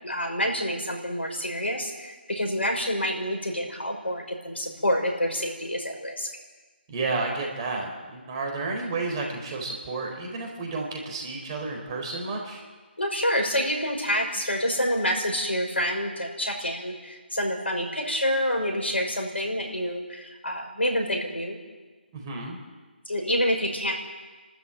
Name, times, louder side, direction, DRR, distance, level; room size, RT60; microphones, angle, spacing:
voice 1, 0.0-6.3 13.0-21.6 23.1-24.0, equal, 80° left, 3 dB, 6.0 m, -27 dB
voice 2, 6.9-12.6 22.1-22.6, right 3 dB, 25° right, 1 dB, 4.3 m, -31 dB
28.5 x 13.0 x 9.1 m, 1.3 s
figure-of-eight pair, 150°, 6 cm